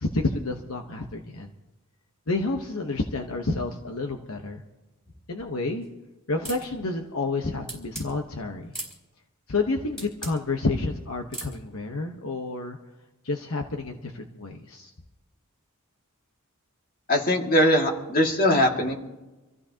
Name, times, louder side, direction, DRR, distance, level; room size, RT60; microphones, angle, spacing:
voice 1, 0.0-1.5 2.3-4.6 5.3-5.9 6.3-8.7 9.5-12.8 13.2-14.9, left 3 dB, 65° left, 3 dB, 1.2 m, -29 dB
sound 1, 6.5-6.7 7.7-8.1 8.7-9.0 10.0-10.4 11.3-11.6, right 2 dB, ahead, 4.5 m, -36 dB
voice 2, 17.1-18.9, left 1 dB, 40° left, 1 dB, 2.3 m, -21 dB
26.5 x 15.0 x 2.9 m, 1.1 s
head